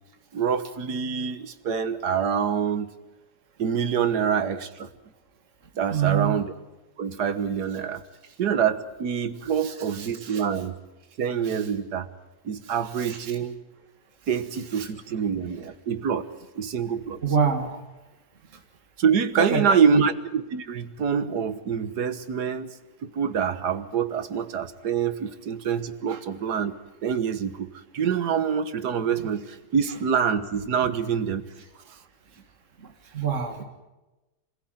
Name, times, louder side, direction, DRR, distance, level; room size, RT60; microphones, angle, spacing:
voice 1, 0.3-2.9 3.6-4.9 5.8-6.5 7.0-8.0 8.4-10.8 11.2-12.1 12.5-13.6 14.3-16.2 16.6-17.2 19.0-22.7 23.0-26.7 27.0-31.4, right 7 dB, 70° right, 12 dB, 1.8 m, -26 dB
voice 2, 5.9-6.4 9.6-10.4 11.4-11.6 12.6-13.2 14.8-14.9 17.2-17.8 19.4-19.6 19.9-20.0 26.1-26.2 32.8-33.6, right 7 dB, 45° right, 5 dB, 2.2 m, -27 dB
26.5 x 16.0 x 9.2 m, 1.1 s
omnidirectional pair, 1.8 m